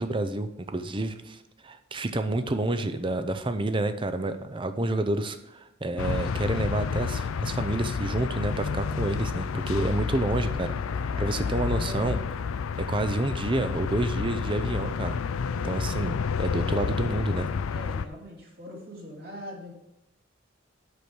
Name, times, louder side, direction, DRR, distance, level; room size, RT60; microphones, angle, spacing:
voice 1, 0.0-10.7 11.2-12.2 12.8-15.2 15.6-17.5, right 2 dB, 25° right, 9 dB, 0.6 m, -29 dB
sound 1, 6.0-18.1, left 5 dB, 90° left, 0.4 m, -30 dB
voice 2, 11.0-12.2 17.7-19.7, left 1 dB, 50° right, -2 dB, 2.8 m, -42 dB
8.2 x 6.3 x 5.2 m, 0.90 s
head